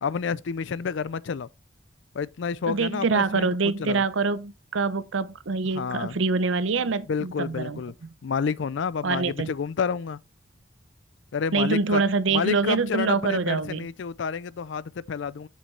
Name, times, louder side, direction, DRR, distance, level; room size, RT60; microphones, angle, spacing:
voice 1, 0.0-1.5 2.1-3.5 3.8-4.0 5.7-6.2 7.1-7.9 8.2-10.2 11.3-12.0 12.3-15.5, left 6 dB, 70° left, 0.4 m, -29 dB
voice 2, 2.7-7.8 9.0-9.5 11.5-13.8, right 4 dB, 80° right, 0.6 m, -25 dB
7.4 x 7.2 x 3.2 m
head